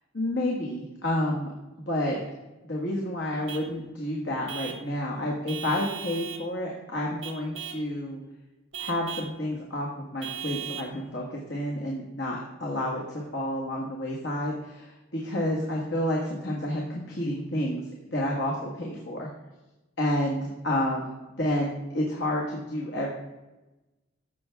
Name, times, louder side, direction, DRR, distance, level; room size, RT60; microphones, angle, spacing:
voice 1, 0.1-1.5 1.9-2.2 2.7-8.2 8.8-17.8 18.1-19.3 20.0-23.1, left 1 dB, 65° left, -2 dB, 1.6 m, -30 dB
Vehicle horn car horn honking / Truck, 3.5-3.7 4.5-4.9 5.5-6.5 7.2-7.9 8.7-9.4 10.2-10.9, right 8 dB, 85° right, 1.1 m, -38 dB
14.5 x 5.8 x 3.5 m, 1.0 s
head